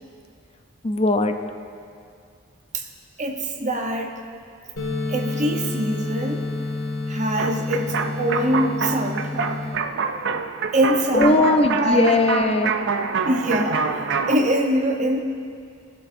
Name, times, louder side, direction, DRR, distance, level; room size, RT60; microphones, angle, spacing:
voice 1, 0.8-1.3 11.1-12.7, left 2 dB, 30° left, 6 dB, 0.6 m, -19 dB
voice 2, 3.2-4.1 5.1-6.5 7.1-9.6 10.7-11.5 11.8-12.2 13.2-13.8 14.3-15.2, right 1 dB, 35° right, 3 dB, 0.9 m, -23 dB
sound 1, 4.8-9.8, left 2 dB, 80° left, 1.9 m, -29 dB
sound 2, 7.4-14.4, right 5 dB, 60° right, 0.5 m, -26 dB
17.5 x 12.0 x 2.7 m, 2.3 s
head